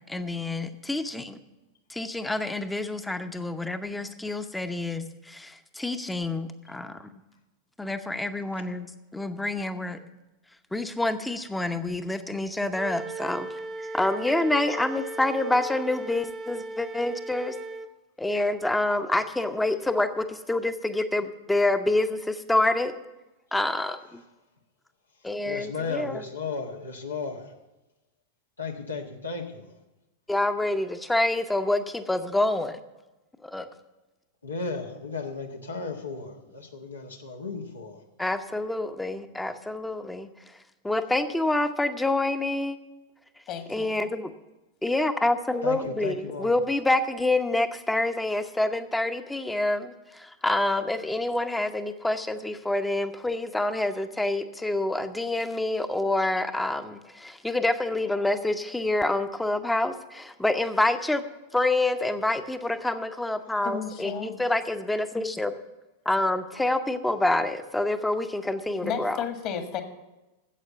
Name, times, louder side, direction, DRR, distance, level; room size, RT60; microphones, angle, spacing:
voice 1, 0.0-1.4 1.9-7.1 7.8-10.0 10.7-17.6 18.2-22.9 23.5-24.2 25.2-26.3 30.3-32.8 33.4-33.7 38.2-40.3 40.8-42.8 43.7-44.3 44.8-61.2 61.5-65.5 66.0-69.2, left 2 dB, 5° left, 9 dB, 0.9 m, -27 dB
Wind instrument woodwind instrument, 12.7-17.9, right 2 dB, 25° right, 0.7 m, -37 dB
voice 2, 25.4-27.5 28.6-29.7 34.4-38.0 45.6-46.5, left 4 dB, 75° left, 2 dB, 1.3 m, -34 dB
voice 3, 43.5-43.9 63.6-64.4 68.8-69.8, left 7 dB, 40° left, 7 dB, 1.6 m, -33 dB
13.5 x 8.1 x 6.8 m, 1.0 s
figure-of-eight pair, 90°, 0 cm